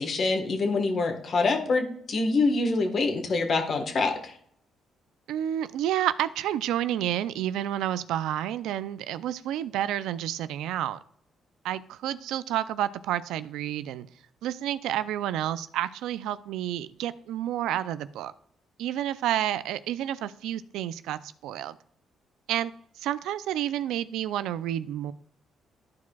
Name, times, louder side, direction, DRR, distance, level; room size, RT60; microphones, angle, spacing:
voice 1, 0.0-4.3, left 3 dB, 50° left, 5 dB, 1.3 m, -25 dB
voice 2, 5.3-11.0 11.6-14.1 14.4-18.3 18.8-21.7 22.5-25.1, right 11 dB, 90° right, 14 dB, 0.4 m, -30 dB
13.0 x 4.7 x 2.3 m, 0.64 s
cardioid pair, 90°, 0 cm